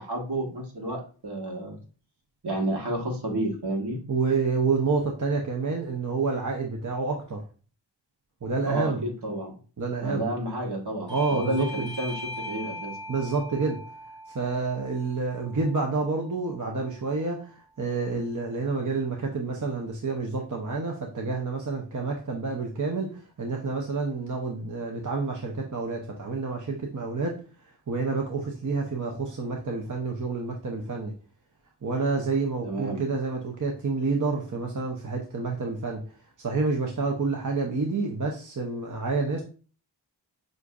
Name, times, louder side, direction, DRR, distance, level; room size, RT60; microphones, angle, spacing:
voice 1, 0.0-1.8 2.4-4.0 8.6-9.5 10.0-13.0 32.6-33.0, right 1 dB, 65° right, 1.4 m, -31 dB
voice 2, 4.1-7.4 8.4-9.0 9.8-10.3 11.1-11.9 13.1-13.8 14.3-27.4 27.9-31.1 31.8-36.0 36.4-39.4, right 4 dB, 45° right, 0.7 m, -28 dB
Bell / Doorbell, 11.1-16.3, left 1 dB, 10° right, 1.7 m, -40 dB
6.3 x 2.6 x 2.4 m
wide cardioid pair, 50°, 43 cm